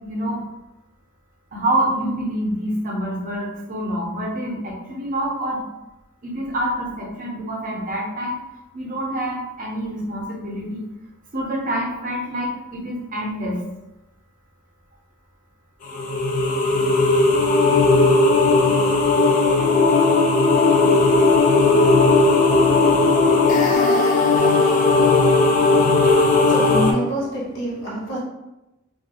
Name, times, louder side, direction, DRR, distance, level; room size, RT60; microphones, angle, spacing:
voice 1, 0.0-0.4 1.5-5.6 6.2-8.4 8.7-10.9 11.3-13.6, right 1 dB, 40° right, -2 dB, 0.6 m, -26 dB
sound 1, 15.9-26.9, left 3 dB, 40° left, 0.3 m, -16 dB
voice 2, 26.5-28.2, right 1 dB, 60° left, -4 dB, 0.9 m, -26 dB
2.4 x 2.3 x 2.7 m, 0.97 s
head